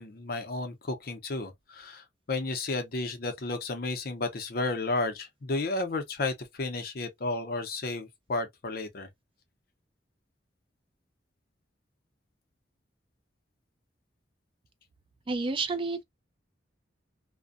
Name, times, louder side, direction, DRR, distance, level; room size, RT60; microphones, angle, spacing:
voice 1, 0.0-9.1, left 2 dB, 50° left, 0.6 m, -32 dB
voice 2, 15.3-16.0, right 3 dB, 30° right, 0.3 m, -30 dB
2.5 x 2.1 x 2.4 m
head